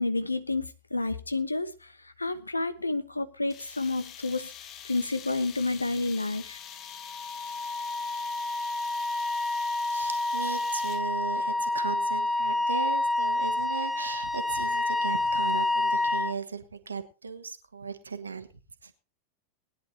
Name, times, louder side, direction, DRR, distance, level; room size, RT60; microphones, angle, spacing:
voice 1, 0.0-4.5 4.8-6.6, left 3 dB, 80° left, 0.9 m, -30 dB
sound 1, 3.5-11.2, left 9 dB, 35° left, 1.1 m, -45 dB
Wind instrument woodwind instrument, 6.9-16.4, left 2 dB, 10° left, 0.6 m, -28 dB
voice 2, 9.9-18.5 18.8-18.9, right 5 dB, 75° right, 1.3 m, -37 dB
20.5 x 10.5 x 2.8 m
figure-of-eight pair, 90°, 0 cm